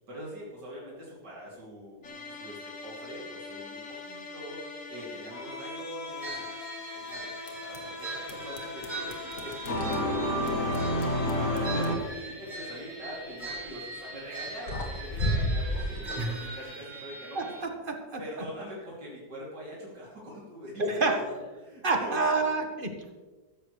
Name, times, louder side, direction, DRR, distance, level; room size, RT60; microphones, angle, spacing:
voice 1, 0.1-4.6 4.9-6.7 6.9-9.3 9.6-17.4 18.2-22.2, equal, 90° right, -6 dB, 3.7 m, -43 dB
sound 1, 2.0-12.0, left 1 dB, 50° left, 1.8 m, -34 dB
sound 2, 6.2-17.6, right 2 dB, 65° right, 5.7 m, -41 dB
sound 3, 7.8-8.0 8.3-8.9 9.4-11.2 13.4-13.7 14.4-14.5 14.7-16.1, equal, 85° left, 2.4 m, -32 dB
voice 2, 17.3-18.2 20.8-21.2 21.8-23.1, right 3 dB, 30° right, 4 dB, 1.7 m, -28 dB
14.5 x 14.0 x 3.3 m, 1.3 s
omnidirectional pair, 1.8 m